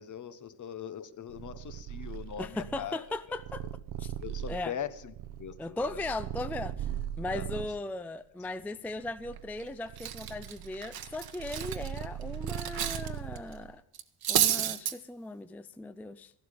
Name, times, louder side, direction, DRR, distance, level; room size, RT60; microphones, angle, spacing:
voice 1, 0.0-3.0 4.2-5.1 5.4-6.0 7.3-7.7, left 9 dB, 50° left, 13 dB, 1.1 m, -41 dB
Purr, 1.3-7.8 8.5-13.7, right 10 dB, 85° right, 1.0 m, -40 dB
voice 2, 2.4-3.6 4.0-4.1 4.5-4.7 5.6-6.9 7.2-13.8 14.3-16.3, left 2 dB, 5° left, 12 dB, 0.4 m, -38 dB
Cutlery silverware, 9.4-9.6 10.0-13.1 13.4-13.5 13.9-14.9, right 10 dB, 65° right, 1.2 m, -30 dB
15.0 x 12.0 x 5.1 m, 0.77 s
cardioid pair, 140°, 39 cm